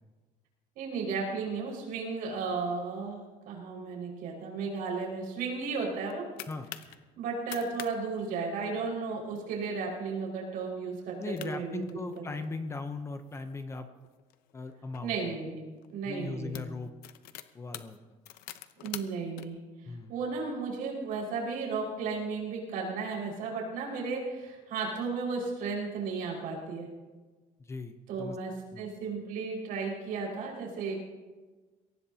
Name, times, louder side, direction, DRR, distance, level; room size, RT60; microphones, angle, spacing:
voice 1, 0.8-6.3 7.2-11.8 12.2-12.3 15.0-15.6 15.9-16.6 18.8-19.6 20.1-26.9 28.1-31.0, right 4 dB, 70° right, -2 dB, 5.4 m, -34 dB
sound 1, 5.8-7.0 7.4-7.9 8.2-8.3 8.6-9.0 9.5-9.8 10.2-10.3 11.1-11.2 11.4-12.5 13.1-15.0 15.8-16.0 16.3-19.4, left 13 dB, 75° left, 0.9 m, -45 dB
voice 2, 11.2-13.9 14.5-15.3 16.0-16.9 17.5-18.0 19.9-20.1 27.6-28.4 28.7-28.9, left 3 dB, 15° left, 7 dB, 0.8 m, -38 dB
23.0 x 18.0 x 2.9 m, 1.3 s
cardioid pair, 170°, 15 cm